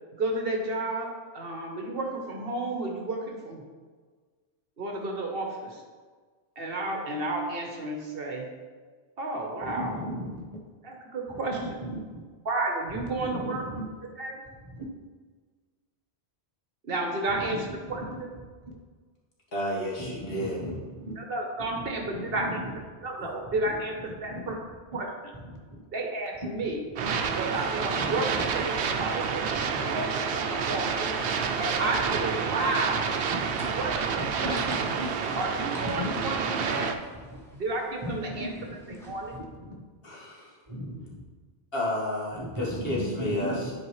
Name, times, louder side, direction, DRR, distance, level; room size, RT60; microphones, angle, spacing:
voice 1, 0.1-3.6 4.8-5.8 6.6-8.5 9.2-9.9 10.8-11.6 12.4-13.6 14.2-14.4 16.8-18.0 21.2-22.6 23.0-23.9 24.2-24.6 24.9-25.1 25.9-26.8 27.3-28.3 28.5-28.7 29.0-31.1 31.6-33.1 33.8-34.6 35.4-36.4 36.6-36.9 37.5-38.5 38.9-39.3, right 2 dB, 60° right, 1 dB, 1.2 m, -32 dB
voice 2, 9.6-10.6 11.6-12.2 12.9-13.8 14.6-14.9 17.3-18.2 20.0-21.2 22.1-22.6 24.3-24.6 25.4-25.8 26.4-26.5 27.0-27.2 28.0-28.5 28.9-29.8 30.1-30.5 31.1-31.6 33.3-33.5 34.4-35.4 35.9-36.6 37.3-37.4 38.0-38.6 39.4-39.7 40.7-41.0 42.3-43.7, equal, 30° right, -2 dB, 1.1 m, -37 dB
voice 3, 19.5-20.6 27.5-27.8 32.7-32.8 40.0-40.6 41.7-43.7, left 1 dB, 60° left, -6 dB, 1.9 m, -31 dB
sound 1, 27.0-36.9, right 6 dB, 85° right, 0.9 m, -29 dB
sound 2, 32.6-39.4, right 1 dB, 5° left, 1.2 m, -47 dB
10.5 x 4.7 x 3.2 m, 1.5 s
omnidirectional pair, 1.1 m